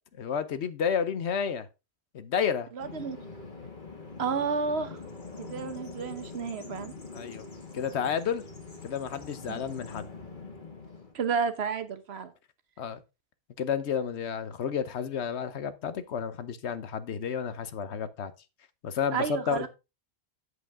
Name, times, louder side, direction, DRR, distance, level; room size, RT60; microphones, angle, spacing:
voice 1, 0.2-1.7 2.1-2.7 7.1-7.5 7.7-8.4 8.8-10.1 12.8-13.0 13.6-18.3 18.8-19.7, left 7 dB, 85° left, 1.1 m, -31 dB
voice 2, 2.7-3.2 4.2-5.0 5.4-6.9 9.5-9.6 11.1-12.3 19.1-19.7, right 5 dB, 70° right, 1.2 m, -31 dB
Bird vocalization bird call bird song, 2.8-11.1, left 4 dB, 50° left, 1.9 m, -44 dB
8.0 x 8.0 x 3.5 m
omnidirectional pair, 1.1 m